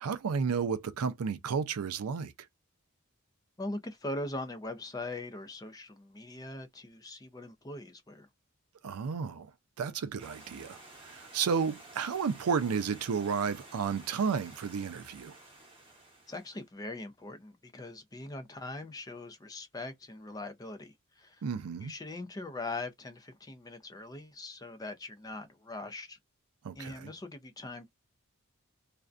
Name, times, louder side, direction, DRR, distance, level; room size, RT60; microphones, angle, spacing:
voice 1, 0.0-2.3 8.8-9.5 9.8-15.4 21.4-21.9 26.6-27.1, right 6 dB, 85° right, 0.4 m, -32 dB
voice 2, 3.6-8.3 16.3-21.4 21.8-26.2 26.8-27.9, left 2 dB, 15° left, 0.4 m, -41 dB
Stream, 10.2-16.7, right 2 dB, 25° right, 0.9 m, -52 dB
2.5 x 2.1 x 2.4 m
head